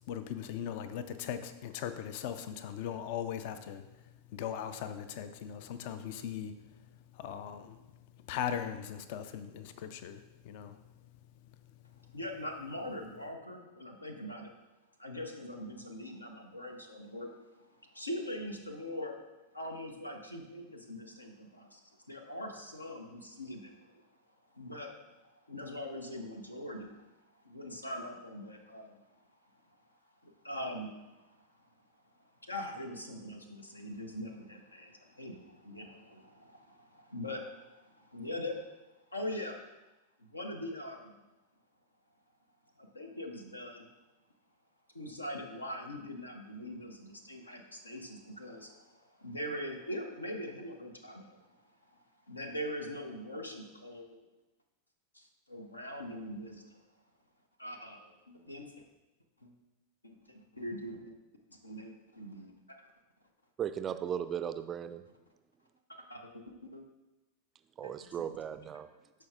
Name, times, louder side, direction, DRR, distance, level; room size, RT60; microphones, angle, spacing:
voice 1, 0.1-3.8 4.3-6.5 7.1-7.8 8.3-10.8, left 9 dB, 50° left, 11 dB, 0.4 m, -39 dB
voice 2, 12.1-14.5 15.0-17.3 17.8-19.2 19.5-21.8 22.1-24.0 24.5-24.9 25.2-26.9 27.3-29.1 30.2-31.4 32.4-38.6 39.1-39.6 40.2-41.2 42.8-43.9 44.9-51.6 51.9-52.0 52.3-54.2 55.1-56.8 57.6-58.7 59.4-59.5 60.0-61.2 61.6-62.8 66.1-66.8 67.8-67.9, left 1 dB, 80° left, 4 dB, 0.8 m, -42 dB
voice 3, 63.6-65.0 67.8-68.9, right 9 dB, 25° right, 11 dB, 0.3 m, -36 dB
13.0 x 4.5 x 2.4 m, 1.1 s
figure-of-eight pair, 90°, 0 cm